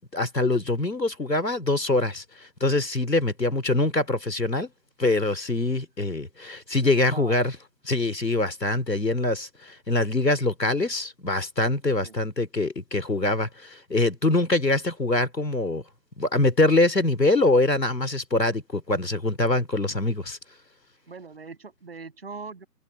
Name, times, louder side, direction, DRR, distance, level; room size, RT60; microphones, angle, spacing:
voice 1, 0.0-4.7 5.0-7.5 7.8-15.8 16.2-20.4, left 2 dB, 80° left, 3.1 m, -24 dB
voice 2, 6.8-7.4 12.0-12.2 21.1-22.7, right 4 dB, 35° right, 7.3 m, -41 dB
figure-of-eight pair, 160°, 49 cm